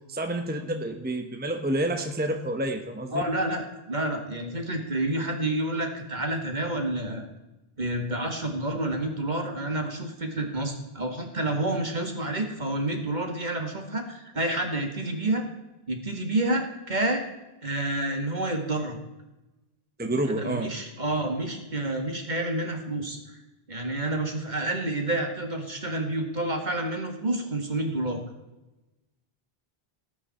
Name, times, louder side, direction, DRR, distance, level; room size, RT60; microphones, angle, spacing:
voice 1, 0.1-3.2 20.0-20.7, right 1 dB, 10° right, 5 dB, 1.0 m, -29 dB
voice 2, 3.1-7.2 7.8-15.5 15.9-17.2 17.6-19.0 20.3-23.2 23.7-28.2, right 1 dB, 45° right, 4 dB, 2.1 m, -29 dB
18.5 x 9.1 x 4.3 m, 1.0 s
omnidirectional pair, 1.0 m